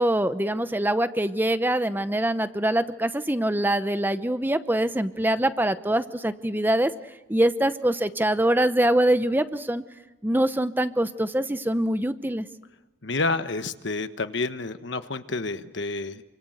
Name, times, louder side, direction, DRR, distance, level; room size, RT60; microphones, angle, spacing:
voice 1, 0.0-6.9 7.3-9.8 10.2-12.5, right 1 dB, 10° right, 11 dB, 0.9 m, -24 dB
voice 2, 13.0-16.2, left 3 dB, 70° left, 10 dB, 1.3 m, -29 dB
28.5 x 25.5 x 8.0 m, 1.1 s
head